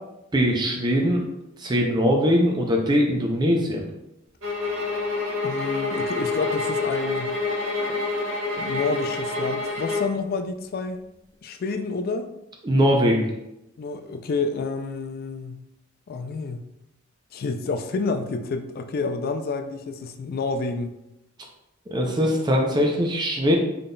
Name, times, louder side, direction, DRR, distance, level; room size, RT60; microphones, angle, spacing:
voice 1, 0.3-1.2 1.6-3.8 12.6-13.2 21.9-23.6, equal, 20° right, 1 dB, 0.4 m, -21 dB
sound 1, 4.4-10.2, left 3 dB, 75° right, 1.1 m, -27 dB
voice 2, 5.4-7.4 8.6-11.0 11.4-12.3 13.8-15.6 16.1-16.6 17.3-20.9, left 4 dB, 45° left, 7 dB, 0.3 m, -29 dB
3.7 x 3.6 x 2.2 m, 0.87 s
head